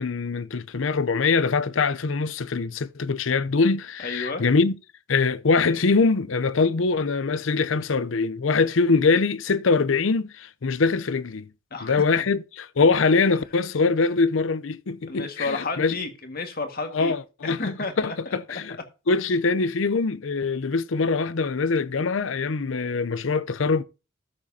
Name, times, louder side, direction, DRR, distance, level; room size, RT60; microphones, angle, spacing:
voice 1, 0.0-4.7 5.1-11.5 11.8-15.9 16.9-18.8 19.1-23.8, left 4 dB, 80° left, 0.6 m, -23 dB
voice 2, 4.0-4.4 11.7-12.2 14.0-14.1 15.1-17.1 17.4-18.4, left 3 dB, 50° left, 1.7 m, -32 dB
13.0 x 7.5 x 2.7 m
head